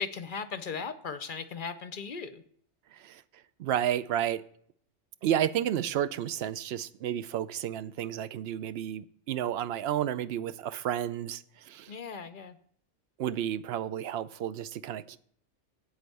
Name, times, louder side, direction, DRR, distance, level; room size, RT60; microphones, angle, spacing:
voice 1, 0.0-2.4 11.9-12.6, left 5 dB, 55° left, 12 dB, 0.7 m, -37 dB
voice 2, 2.9-3.2 3.6-4.4 5.2-11.9 13.2-15.2, right 10 dB, 65° right, 15 dB, 0.7 m, -31 dB
8.6 x 8.0 x 5.4 m, 0.64 s
omnidirectional pair, 1.2 m